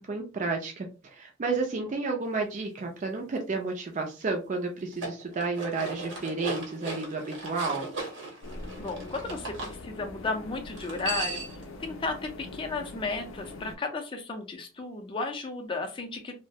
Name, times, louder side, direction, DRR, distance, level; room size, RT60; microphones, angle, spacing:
voice 1, 0.0-7.9, right 3 dB, 40° right, 2 dB, 0.4 m, -31 dB
sound 1, 4.8-9.7 10.7-11.6, right 2 dB, 65° right, 0.8 m, -37 dB
sound 2, 8.4-13.8, left 2 dB, 90° left, 0.4 m, -43 dB
voice 2, 8.8-11.4 11.8-16.4, left 3 dB, 25° left, 4 dB, 0.4 m, -34 dB
2.2 x 2.0 x 2.7 m, 0.32 s
head